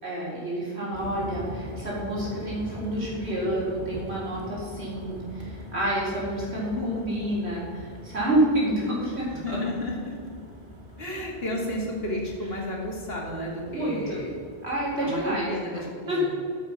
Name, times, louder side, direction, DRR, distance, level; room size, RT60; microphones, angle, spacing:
voice 1, 0.0-9.6 13.7-14.2 14.6-16.2, right 1 dB, 90° right, -6 dB, 4.2 m, -29 dB
sound 1, 0.9-15.6, equal, 55° right, 2.1 m, -42 dB
voice 2, 6.8-7.1 9.4-10.1 11.0-14.3 15.0-16.3, left 1 dB, 70° left, -1 dB, 2.5 m, -32 dB
13.5 x 7.6 x 5.7 m, 2.2 s
omnidirectional pair, 1.1 m